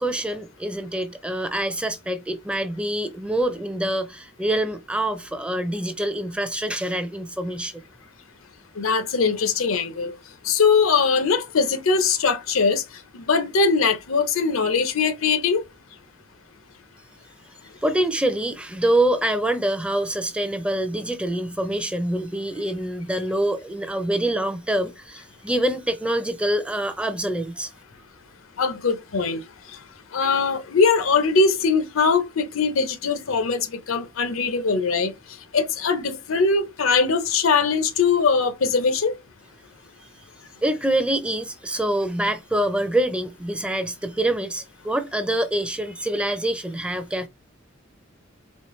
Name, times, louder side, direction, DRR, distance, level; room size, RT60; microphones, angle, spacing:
voice 1, 0.0-7.8 17.8-27.7 40.6-47.3, right 1 dB, 5° right, 0.4 m, -25 dB
voice 2, 8.8-10.1 10.4-12.8 13.1-15.6 28.6-29.4 30.1-35.1 35.5-39.2, left 5 dB, 90° left, 0.7 m, -21 dB
4.4 x 2.9 x 3.1 m
head